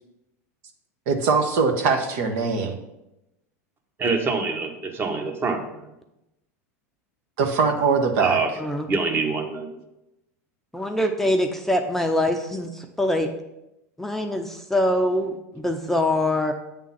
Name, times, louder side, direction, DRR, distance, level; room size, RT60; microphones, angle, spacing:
voice 1, 1.1-2.8 7.4-8.4, right 4 dB, 70° right, 4 dB, 1.1 m, -22 dB
voice 2, 4.0-5.9 8.2-9.8, right 4 dB, 30° right, 4 dB, 1.2 m, -25 dB
voice 3, 10.7-13.3 14.0-16.5, left 1 dB, 5° left, 4 dB, 0.6 m, -24 dB
8.5 x 3.7 x 5.7 m, 0.92 s
hypercardioid pair, 105°, 8 cm